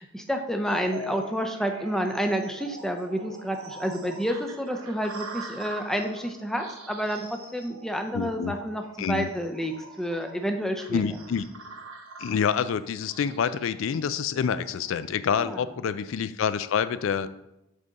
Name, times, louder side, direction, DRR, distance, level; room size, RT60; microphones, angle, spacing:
voice 1, 0.0-11.0 15.4-15.6, equal, ahead, 4 dB, 0.5 m, -29 dB
sound 1, 0.6-14.9, right 2 dB, 85° right, 1.1 m, -43 dB
voice 2, 8.1-8.5 9.0-9.3 10.9-11.4 12.2-17.3, left 7 dB, 65° left, 14 dB, 0.3 m, -27 dB
6.6 x 3.6 x 5.2 m, 0.91 s
head